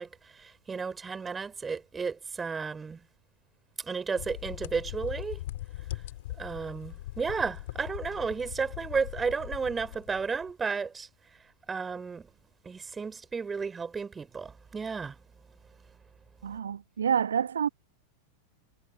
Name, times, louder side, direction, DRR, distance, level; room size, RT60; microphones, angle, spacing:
voice 1, 0.0-3.0 3.8-5.4 6.4-11.1 11.7-12.3 12.6-15.2, right 5 dB, 15° right, 4.5 m, -33 dB
sound 1, 4.2-10.5, left 15 dB, 55° left, 3.6 m, -40 dB
voice 2, 16.4-17.7, right 8 dB, 70° right, 1.2 m, -28 dB
figure-of-eight pair, 90°, 0 cm